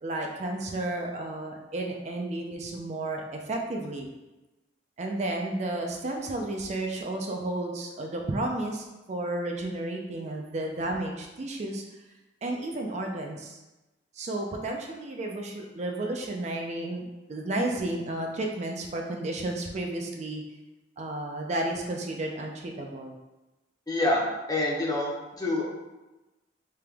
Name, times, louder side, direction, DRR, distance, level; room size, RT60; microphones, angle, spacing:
voice 1, 0.0-4.1 5.0-11.8 12.4-13.6 14.1-20.4 21.0-23.1, right 2 dB, 40° right, 1 dB, 0.4 m, -32 dB
voice 2, 23.9-24.2 24.5-25.7, left 2 dB, 20° left, -3 dB, 0.7 m, -27 dB
3.3 x 2.9 x 3.4 m, 1.1 s
head